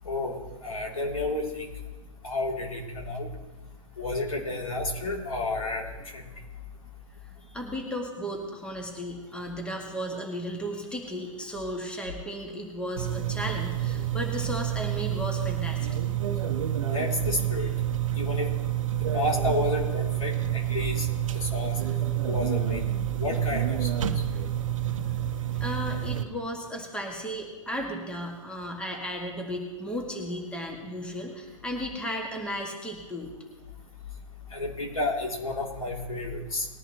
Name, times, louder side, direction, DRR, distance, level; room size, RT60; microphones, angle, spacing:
voice 1, 0.0-0.4 0.6-1.6 2.2-3.3 4.0-5.8 16.9-17.7 18.2-18.5 19.1-21.1 21.3-21.8 22.3-22.8 23.1-23.9 34.5-36.7, left 2 dB, 85° left, -1 dB, 3.1 m, -30 dB
voice 2, 7.5-16.0 24.3-24.5 25.5-33.3, equal, 5° left, 1 dB, 2.0 m, -35 dB
sound 1, 13.0-26.2, right 12 dB, 70° right, 0.9 m, -28 dB
20.5 x 10.5 x 3.1 m, 1.2 s
hypercardioid pair, 120°, 17 cm